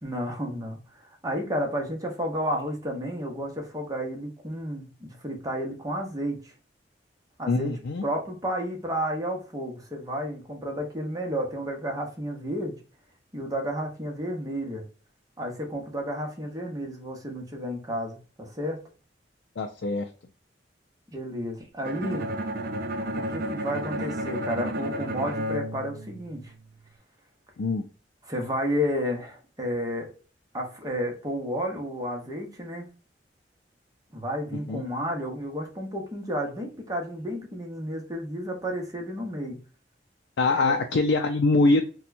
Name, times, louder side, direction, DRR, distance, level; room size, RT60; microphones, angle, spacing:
voice 1, 0.0-6.5 7.4-7.7 8.0-12.8 13.3-14.8 15.4-18.8 21.1-22.2 23.3-26.5 28.3-30.1 30.5-32.9 34.1-39.6 40.5-40.8, equal, 20° right, 2 dB, 0.9 m, -31 dB
voice 2, 7.5-8.0 19.6-20.1 27.6-27.9 34.5-34.8 40.4-41.8, left 3 dB, 90° left, 4 dB, 0.5 m, -23 dB
Bowed string instrument, 21.8-26.8, equal, 60° right, 0.6 m, -32 dB
4.2 x 2.2 x 2.6 m, 0.36 s
head